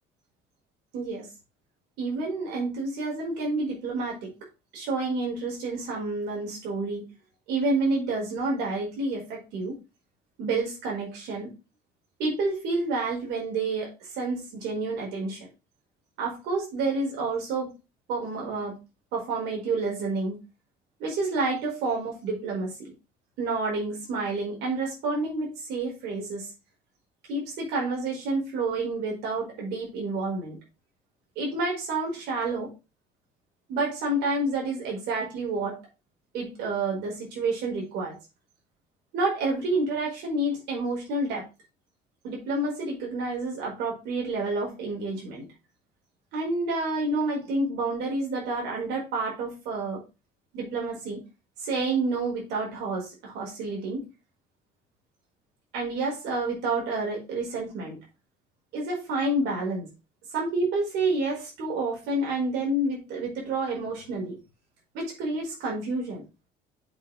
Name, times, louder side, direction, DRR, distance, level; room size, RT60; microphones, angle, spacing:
voice 1, 0.9-1.3 2.0-4.3 4.7-7.0 7.5-9.8 10.4-11.5 12.2-15.4 16.2-17.7 18.1-18.7 19.1-20.4 21.0-22.9 23.4-26.5 27.3-30.6 31.4-32.7 33.7-35.8 36.3-38.2 39.1-41.4 42.2-45.5 46.3-50.0 50.5-51.2 51.6-54.0 55.7-58.0 58.7-59.9 60.3-64.4 64.9-66.2, right 3 dB, 90° right, -1 dB, 4.6 m, -29 dB
7.8 x 4.3 x 5.6 m, 0.28 s
cardioid pair, 110°, 17 cm